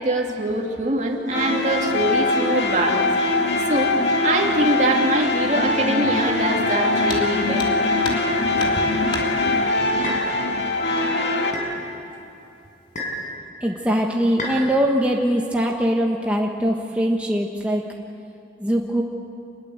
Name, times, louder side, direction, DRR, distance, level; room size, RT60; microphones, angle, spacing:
voice 1, 0.0-3.4 3.7-7.8 8.4-8.9, right 2 dB, 45° right, 1 dB, 2.7 m, -24 dB
sound 1, 1.3-11.5, left 2 dB, 80° left, 2.2 m, -22 dB
sound 2, 7.1-7.3 7.6-8.3 8.6-9.3 10.5-10.6 11.1-11.2 11.9-12.3 12.6-13.0, left 2 dB, 30° left, 3.0 m, -32 dB
sound 3, 8.6-8.8 10.0-10.3 11.5-11.7 12.9-13.3 14.4-14.6, left 1 dB, 45° left, 6.0 m, -29 dB
voice 2, 13.6-17.8 18.6-19.0, equal, 5° right, -1 dB, 1.4 m, -22 dB
27.5 x 21.0 x 8.0 m, 2.8 s
head